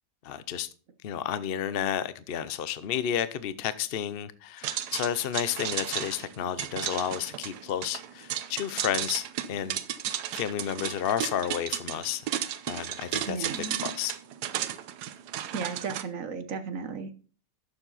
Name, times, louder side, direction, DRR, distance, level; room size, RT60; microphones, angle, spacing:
voice 1, 0.2-0.7 1.0-9.8 10.3-12.2 12.7-13.5 13.8-14.1, left 9 dB, 60° left, 0.6 m, -31 dB
sound 1, 4.6-16.0, right 11 dB, 80° right, 1.3 m, -34 dB
voice 2, 13.2-13.8 15.5-17.1, right 5 dB, 60° right, 1.3 m, -34 dB
11.5 x 7.3 x 4.0 m
omnidirectional pair, 1.7 m